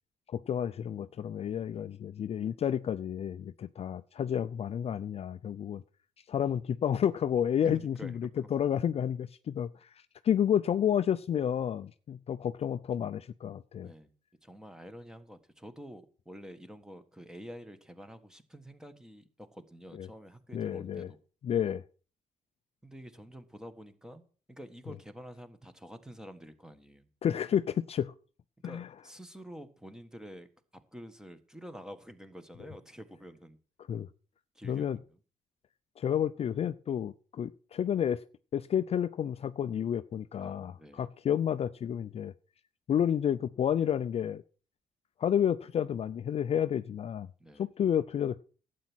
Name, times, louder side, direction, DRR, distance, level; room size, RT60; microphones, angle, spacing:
voice 1, 0.3-5.8 6.3-7.9 8.5-9.9 10.2-13.9 20.0-20.1 20.5-21.1 21.4-21.8 27.2-28.1 28.6-28.9 33.9-34.1 34.6-35.0 36.0-38.2 38.5-42.3 42.9-44.4 45.2-47.3 47.6-48.4, left 9 dB, 45° left, 0.5 m, -30 dB
voice 2, 7.6-8.5 13.8-14.1 14.4-21.2 22.8-27.1 28.6-30.5 30.7-33.6 34.5-35.2 40.4-41.0 47.4-47.7, equal, 5° right, 1.4 m, -48 dB
12.0 x 8.4 x 6.1 m
cardioid pair, 110°, 14 cm